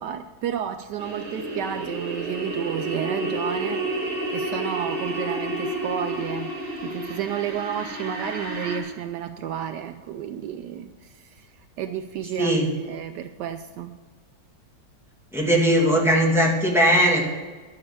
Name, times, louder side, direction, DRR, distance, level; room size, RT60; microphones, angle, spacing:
voice 1, 0.0-3.9 4.3-6.5 6.8-11.5 11.8-13.9, right 9 dB, 75° right, 9 dB, 1.1 m, -31 dB
sound 1, 1.0-8.8, right 1 dB, 45° right, 3.4 m, -30 dB
voice 2, 12.4-12.7 15.3-17.2, equal, ahead, -2 dB, 2.1 m, -19 dB
12.0 x 6.9 x 6.9 m, 1.4 s
omnidirectional pair, 1.9 m